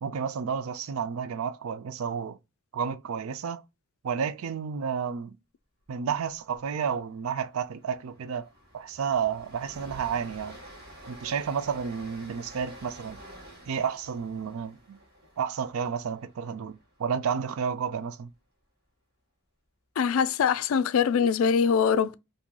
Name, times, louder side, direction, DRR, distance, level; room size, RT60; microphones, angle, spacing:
voice 1, 0.0-2.4 2.7-3.6 4.0-5.4 5.9-8.5 8.7-10.6 11.1-13.2 13.7-15.0 15.4-18.3, right 7 dB, 80° right, 0.4 m, -31 dB
Train, 6.5-6.6 6.8-7.0 7.4-17.5, equal, 50° right, 1.3 m, -49 dB
voice 2, 20.0-22.2, left 6 dB, 75° left, 0.3 m, -23 dB
3.0 x 2.7 x 3.7 m
head